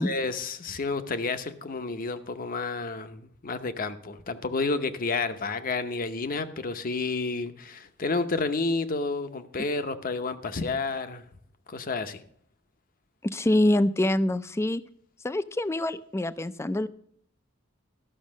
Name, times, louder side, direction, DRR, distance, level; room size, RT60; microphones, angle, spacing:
voice 1, 0.0-11.2 11.7-12.2, left 3 dB, 45° left, 0.8 m, -30 dB
voice 2, 13.2-14.8 15.2-16.9, left 1 dB, 15° left, 0.4 m, -25 dB
12.5 x 6.4 x 6.3 m
head